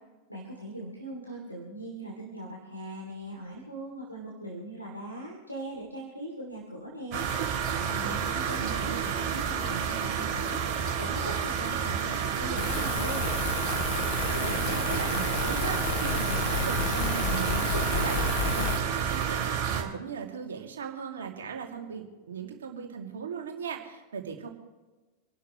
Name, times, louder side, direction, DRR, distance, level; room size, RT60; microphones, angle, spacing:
voice 1, 0.3-7.3 7.7-13.3, right 1 dB, 90° left, -2 dB, 2.9 m, -40 dB
sound 1, 7.1-19.8, right 8 dB, 40° right, 3.3 m, -30 dB
voice 2, 8.5-9.0 14.3-24.5, right 7 dB, 65° right, 2 dB, 2.5 m, -38 dB
sound 2, 12.5-18.8, left 5 dB, 50° left, 3.9 m, -31 dB
27.5 x 12.0 x 3.2 m, 1.2 s
figure-of-eight pair, 90°, 0 cm